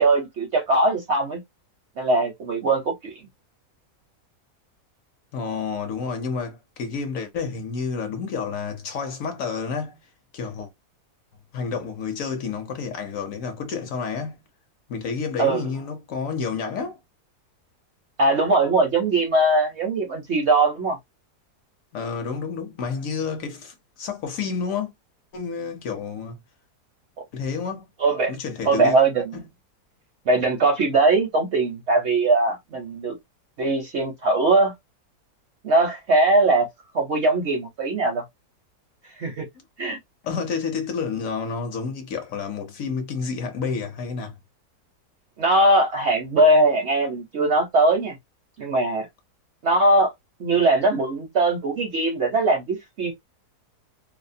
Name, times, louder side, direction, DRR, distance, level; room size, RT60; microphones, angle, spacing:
voice 1, 0.0-1.4 2.0-3.2 15.4-15.6 18.2-21.0 28.0-28.4 28.6-29.4 30.3-33.2 33.6-34.7 35.6-36.7 36.9-38.2 39.2-39.5 39.8-40.0 45.4-48.2 48.6-49.1 49.6-50.1 50.4-53.1, right 2 dB, 60° right, 0.7 m, -20 dB
voice 2, 5.3-10.0 10.3-10.7 11.5-14.4 14.9-17.0 21.9-24.9 25.3-26.4 27.3-27.9 28.3-29.0 29.3-29.5 40.2-44.4, left 5 dB, 65° left, 0.9 m, -30 dB
2.7 x 2.0 x 2.5 m
omnidirectional pair, 1.7 m